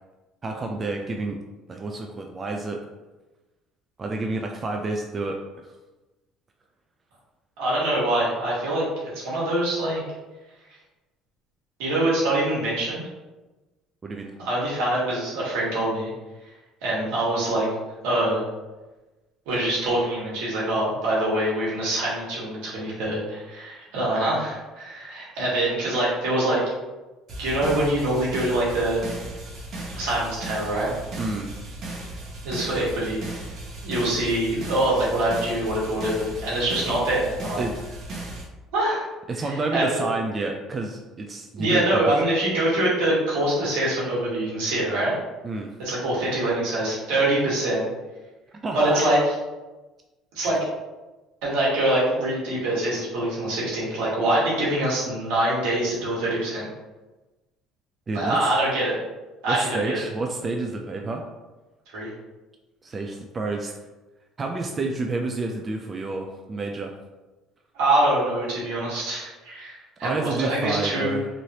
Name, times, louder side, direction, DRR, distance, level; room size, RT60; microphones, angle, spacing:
voice 1, 0.4-1.4 1.7-2.8 4.0-5.7 14.0-14.4 31.2-31.5 37.6-37.7 39.3-42.0 45.4-45.7 48.6-49.0 58.1-58.5 59.5-61.2 62.8-63.7 64.4-67.0 70.0-71.3, right 3 dB, 30° right, 2 dB, 0.3 m, -29 dB
voice 2, 7.6-10.0 11.8-13.0 14.4-16.1 16.8-17.7 18.0-18.4 19.5-26.6 27.4-29.0 29.9-31.0 32.4-33.2 33.8-37.6 38.7-39.1 39.4-40.1 41.5-45.2 45.8-47.9 48.7-49.2 50.3-50.6 51.4-56.7 58.1-59.0 59.4-60.0 61.9-62.1 67.7-71.2, right 1 dB, 85° right, -6 dB, 1.4 m, -24 dB
sound 1, 27.3-38.4, right 2 dB, 50° right, 1.0 m, -36 dB
3.1 x 2.6 x 2.8 m, 1.1 s
cardioid pair, 105°, 0 cm